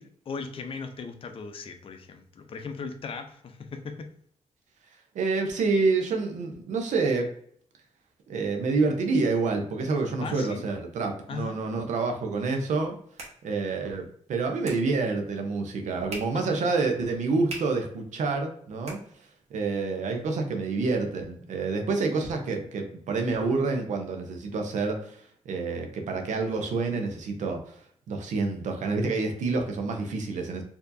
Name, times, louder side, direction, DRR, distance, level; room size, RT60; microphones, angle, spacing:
voice 1, 0.0-4.1 10.2-10.6 11.3-11.6 16.3-16.7, left 5 dB, 45° left, 6 dB, 0.5 m, -38 dB
voice 2, 5.1-7.3 8.3-12.9 13.4-19.0 19.5-30.6, right 3 dB, 75° right, 3 dB, 0.6 m, -28 dB
sound 1, 12.7-19.7, right 2 dB, 55° right, 1.1 m, -47 dB
4.4 x 2.7 x 2.6 m, 0.63 s
cardioid pair, 110°, 13 cm